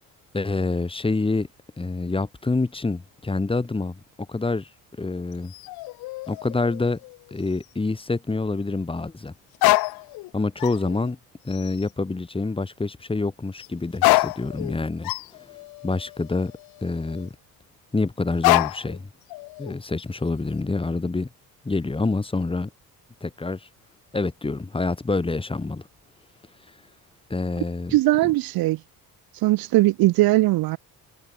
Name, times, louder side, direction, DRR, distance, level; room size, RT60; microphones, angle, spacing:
voice 1, 0.3-1.5 1.8-4.0 4.3-4.7 5.0-5.5 6.3-7.0 7.3-9.3 10.3-11.2 11.4-15.1 15.8-16.5 16.8-17.3 17.9-19.1 19.6-21.3 21.6-22.7 23.2-23.7 24.1-25.8 27.3-28.0, left 3 dB, 15° left, 6.8 m, -26 dB
sound 1, 5.3-7.3 7.6-7.7 9.5-10.3 10.6-11.1 11.5-11.8 13.6-13.7 14.0-17.3 18.4-19.0 19.3-20.0, left 21 dB, 80° left, 0.7 m, -26 dB
voice 2, 27.9-28.8 29.4-30.8, right 18 dB, 75° right, 1.3 m, -19 dB
cardioid pair, 140°, 36 cm